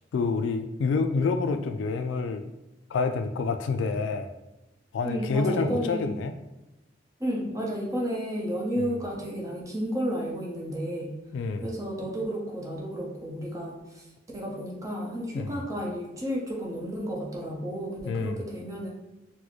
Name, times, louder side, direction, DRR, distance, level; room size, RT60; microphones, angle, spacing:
voice 1, 0.1-2.5 2.9-4.3 4.9-6.3 11.3-11.7 15.3-15.6 18.1-18.4, left 4 dB, 85° left, 8 dB, 0.3 m, -27 dB
voice 2, 5.0-6.1 7.2-11.1 11.6-14.1 14.3-18.9, equal, 20° right, -3 dB, 0.7 m, -32 dB
4.0 x 2.1 x 3.0 m, 0.96 s
head